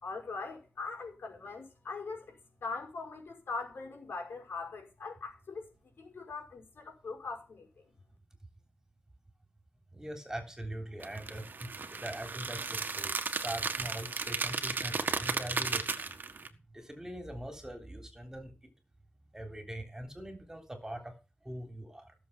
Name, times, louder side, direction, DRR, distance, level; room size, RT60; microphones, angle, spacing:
voice 1, 0.0-5.7 6.0-7.9, left 4 dB, 80° left, 5.2 m, -41 dB
voice 2, 9.9-16.1 16.7-18.7 19.3-21.1 21.4-22.1, right 1 dB, 15° right, 3.3 m, -42 dB
sound 1, 11.0-16.5, right 4 dB, 55° right, 1.6 m, -35 dB
16.5 x 7.2 x 5.7 m
wide cardioid pair, 105°, 4 cm